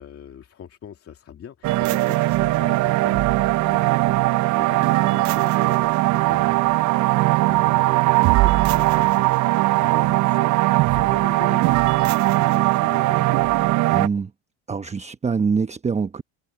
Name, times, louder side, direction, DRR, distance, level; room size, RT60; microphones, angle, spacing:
voice 1, 0.0-9.3 9.8-11.9 12.2-13.6, left 9 dB, 35° left, 2.5 m, -42 dB
sound 1, 1.6-14.1, right 19 dB, 50° right, 0.7 m, -19 dB
voice 2, 13.9-14.3 14.7-16.2, right 5 dB, 15° right, 1.0 m, -24 dB
supercardioid pair, 100°, 38 cm